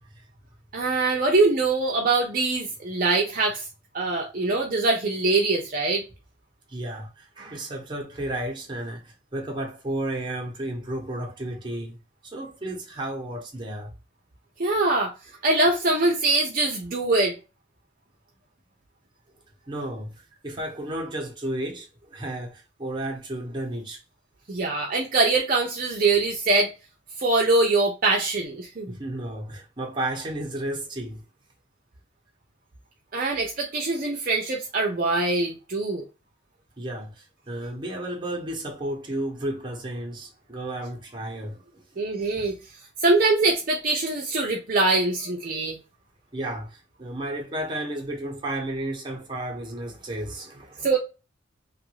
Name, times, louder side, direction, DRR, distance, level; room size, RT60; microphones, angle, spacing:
voice 1, 0.7-3.7 3.9-6.0 14.6-15.1 15.4-17.4 24.5-26.7 27.2-28.9 33.1-36.0 42.0-42.6 43.0-45.8 50.8-51.0, right 3 dB, 45° right, 0.5 m, -23 dB
voice 2, 6.7-12.0 12.2-13.9 19.7-24.0 28.9-31.2 36.8-41.8 46.3-50.9, right 1 dB, 25° right, 0.9 m, -33 dB
3.0 x 2.5 x 3.0 m
head